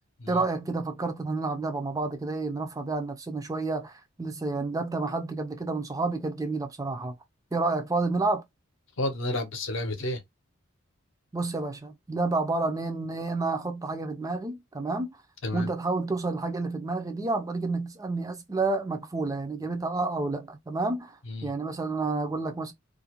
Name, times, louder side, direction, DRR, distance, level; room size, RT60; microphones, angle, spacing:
voice 1, 0.3-7.1 7.5-8.4 11.3-15.1 15.5-22.7, right 3 dB, 15° right, 0.3 m, -30 dB
voice 2, 9.0-10.2 15.4-15.7 21.3-21.5, left 1 dB, 65° left, 0.7 m, -31 dB
2.4 x 2.0 x 2.8 m
head